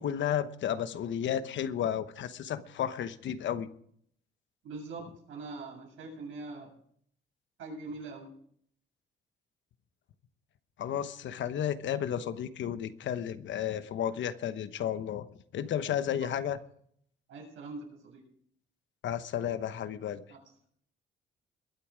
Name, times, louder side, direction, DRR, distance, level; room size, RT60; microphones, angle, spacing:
voice 1, 0.0-3.7 10.8-15.3 15.5-16.6 19.0-20.2, left 9 dB, 70° left, 12 dB, 1.0 m, -32 dB
voice 2, 4.6-6.7 7.6-8.3 16.2-16.3 17.3-18.2 20.3-20.4, right 3 dB, 80° right, 0 dB, 7.5 m, -43 dB
22.0 x 8.4 x 5.0 m, 0.65 s
cardioid pair, 90°, 20 cm